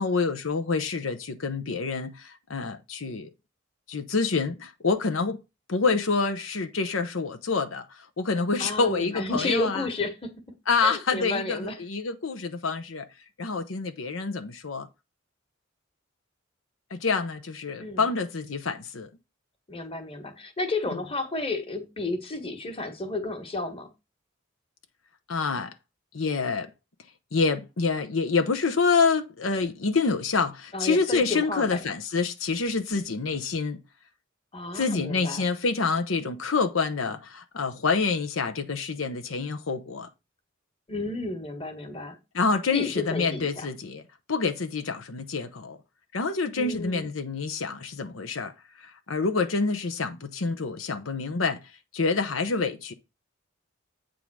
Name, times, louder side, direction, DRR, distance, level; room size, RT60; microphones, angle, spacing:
voice 1, 0.0-3.3 3.9-5.4 5.7-9.9 10.7-13.1 13.4-14.9 16.9-19.1 20.9-21.0 25.3-25.7 26.1-26.7 27.3-33.8 34.7-40.1 42.3-44.0 44.3-45.8 46.1-48.5 48.8-51.6 51.9-52.9, left 4 dB, 80° left, 0.9 m, -27 dB
voice 2, 8.6-11.8 17.8-18.0 19.7-23.9 30.7-31.8 34.5-35.5 40.9-42.2 42.7-43.7 46.5-47.1, left 2 dB, 30° left, 1.5 m, -32 dB
8.5 x 3.8 x 6.1 m
head